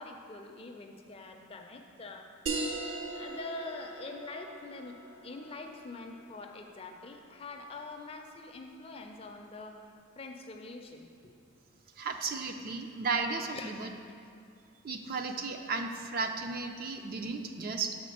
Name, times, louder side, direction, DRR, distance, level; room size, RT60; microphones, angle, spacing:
voice 1, 0.0-2.3 3.1-5.0 5.2-9.8 10.2-11.3 13.5-13.7, left 3 dB, 25° left, 3 dB, 0.4 m, -44 dB
sound 1, 2.5-7.5, right 3 dB, 65° right, 0.8 m, -40 dB
voice 2, 12.0-13.9 14.8-17.9, right 4 dB, 45° right, 5 dB, 0.4 m, -34 dB
5.9 x 4.3 x 6.4 m, 2.4 s
head